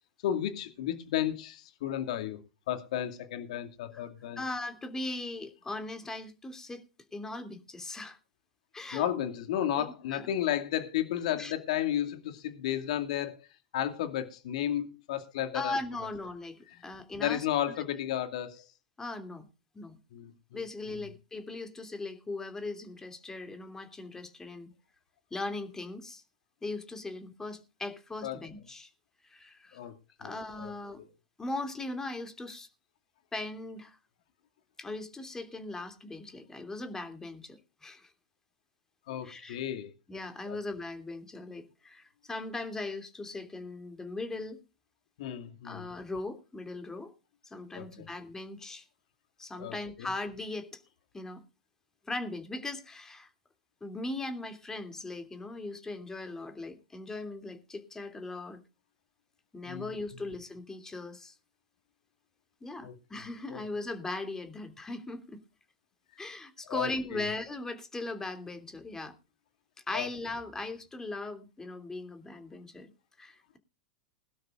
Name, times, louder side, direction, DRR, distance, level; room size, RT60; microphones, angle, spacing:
voice 1, 0.2-2.4 2.7-4.4 8.9-13.4 13.7-15.8 16.7-16.9 17.2-18.7 20.1-20.6 20.9-21.1 28.2-28.5 29.7-31.1 39.1-39.9 40.5-40.6 45.2-45.9 47.8-48.1 49.6-50.1 59.6-60.2 62.8-62.9 63.5-63.6 66.7-67.2 69.9-70.1, left 11 dB, 65° left, 2.4 m, -33 dB
voice 2, 4.4-6.8 7.1-8.2 8.7-9.0 9.8-10.2 11.3-11.5 15.5-17.5 19.0-19.5 19.7-20.0 20.5-24.7 25.3-26.2 26.6-28.9 29.3-29.8 30.2-31.0 31.4-32.7 33.3-34.0 34.8-38.1 39.2-39.6 40.1-44.6 45.6-47.1 47.5-48.8 49.4-50.8 51.1-51.4 52.1-53.3 53.8-58.6 59.5-61.3 62.6-65.4 66.2-69.1 69.9-72.9 73.2-73.6, left 2 dB, 15° left, 2.9 m, -39 dB
21.5 x 12.5 x 2.5 m
hypercardioid pair, 95°, 4 cm